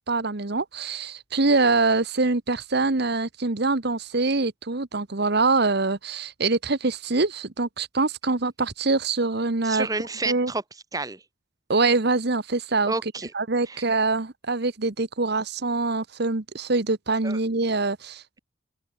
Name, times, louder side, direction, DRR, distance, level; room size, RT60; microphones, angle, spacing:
voice 1, 0.0-9.9 10.2-10.5 11.7-12.9 13.3-18.4, right 3 dB, 55° right, 1.2 m, -24 dB
voice 2, 9.6-10.6 10.9-11.2 12.8-13.3 13.7-13.8 17.2-17.4, right 3 dB, 20° right, 1.4 m, -30 dB
open air
head